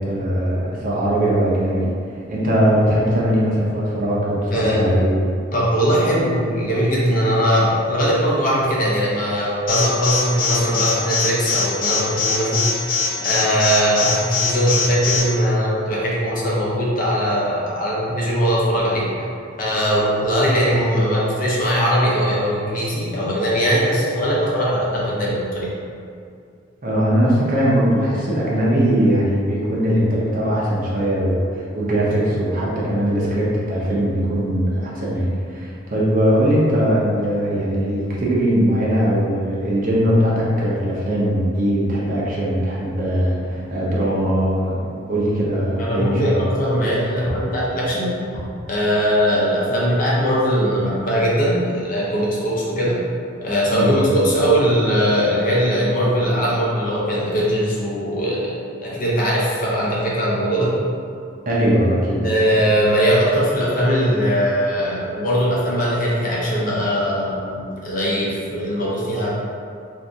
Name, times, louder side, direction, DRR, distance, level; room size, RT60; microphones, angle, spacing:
voice 1, 0.1-1.9 2.3-5.2 26.8-44.8 45.1-46.4 53.7-54.0 61.5-62.2, equal, 45° right, -6 dB, 0.7 m, -20 dB
voice 2, 4.5-4.9 5.5-12.7 13.2-19.1 19.6-25.7 45.8-48.1 48.7-53.0 53.4-58.5 58.8-60.7 62.2-69.3, equal, 45° left, -5 dB, 0.7 m, -20 dB
Alarm, 9.7-15.2, left 5 dB, 85° left, 1.1 m, -21 dB
2.7 x 2.5 x 3.5 m, 2.3 s
head